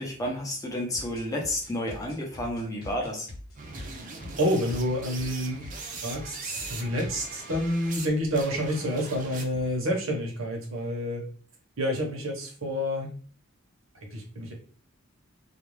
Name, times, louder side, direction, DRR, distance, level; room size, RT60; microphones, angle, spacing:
voice 1, 0.0-3.3, left 1 dB, 15° left, 0 dB, 0.6 m, -31 dB
sound 1, 0.8-5.3 5.6-5.8 6.1-6.3 6.6-6.8 7.0-7.7, left 1 dB, 45° left, 0.8 m, -43 dB
sound 2, 3.6-8.1 8.3-9.7, right 4 dB, 35° right, 0.4 m, -41 dB
voice 2, 4.4-5.6 6.0-11.2 11.8-13.1 14.1-14.5, equal, 70° right, 1 dB, 0.8 m, -28 dB
2.4 x 2.2 x 3.1 m, 0.42 s
head